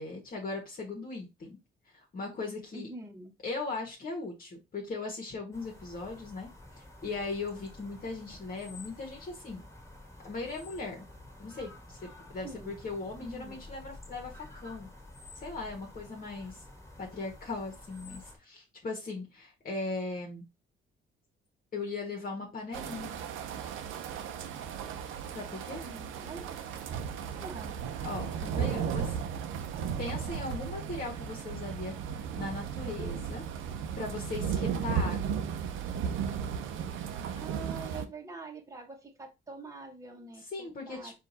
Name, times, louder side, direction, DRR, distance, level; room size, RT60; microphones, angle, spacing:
voice 1, 0.0-1.6 1.9-2.9 3.4-6.5 6.8-9.6 10.2-11.1 11.4-12.0 12.3-14.9 15.3-16.6 17.0-20.4 21.7-23.1 25.3-25.8 28.0-29.2 30.0-33.4 34.0-35.4 40.5-41.1, left 3 dB, 45° left, 0 dB, 1.2 m, -38 dB
voice 2, 2.7-3.3 12.4-12.7 13.2-13.6 25.8-26.4 27.3-27.8 37.3-41.1, right 3 dB, 15° right, 1 dB, 1.1 m, -45 dB
sound 1, 5.5-18.4, left 2 dB, 15° left, 1.7 m, -50 dB
sound 2, 22.7-38.1, right 7 dB, 85° right, 0.6 m, -35 dB
4.5 x 2.5 x 4.0 m, 0.25 s
cardioid pair, 90°, 20 cm